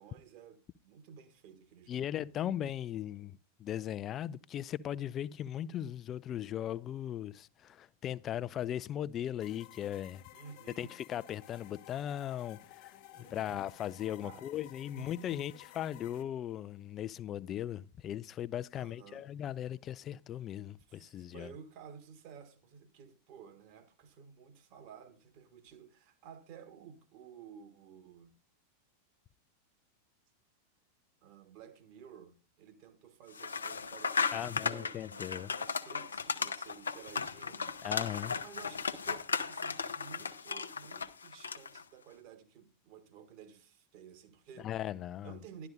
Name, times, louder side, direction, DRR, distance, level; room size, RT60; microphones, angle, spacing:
voice 1, 0.0-2.3 10.3-10.9 13.1-13.6 13.9-14.5 14.9-15.5 18.7-19.2 20.9-28.3 31.2-37.7 38.4-44.7 45.2-45.7, right 7 dB, 45° right, 1.5 m, -53 dB
voice 2, 1.9-10.2 10.8-21.5 34.3-35.5 37.8-38.4 44.6-45.4, left 11 dB, 30° left, 0.4 m, -38 dB
sound 1, 9.4-16.2, left 15 dB, 45° left, 0.9 m, -55 dB
sound 2, 33.3-41.8, left 5 dB, 75° left, 0.6 m, -36 dB
12.0 x 11.5 x 2.6 m
figure-of-eight pair, 90°, 0 cm